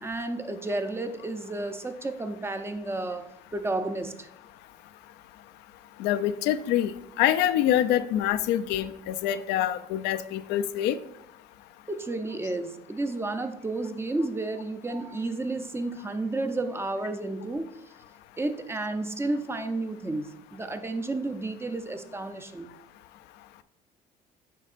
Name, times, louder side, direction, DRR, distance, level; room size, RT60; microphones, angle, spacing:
voice 1, 0.0-4.3 11.9-17.7 18.4-22.7, right 2 dB, 15° right, 8 dB, 0.5 m, -32 dB
voice 2, 6.0-11.0, left 11 dB, 90° left, 11 dB, 0.4 m, -25 dB
8.4 x 5.2 x 2.5 m, 0.79 s
cardioid pair, 110°, 17 cm